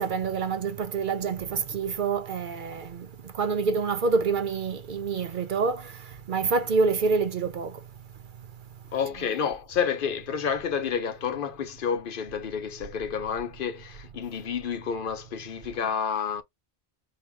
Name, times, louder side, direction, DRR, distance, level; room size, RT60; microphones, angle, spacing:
voice 1, 0.0-3.1 3.3-5.9 6.3-7.7, right 4 dB, 55° right, 0.7 m, -27 dB
voice 2, 8.9-16.4, left 7 dB, 60° left, 0.7 m, -30 dB
4.4 x 2.9 x 3.3 m
omnidirectional pair, 1.0 m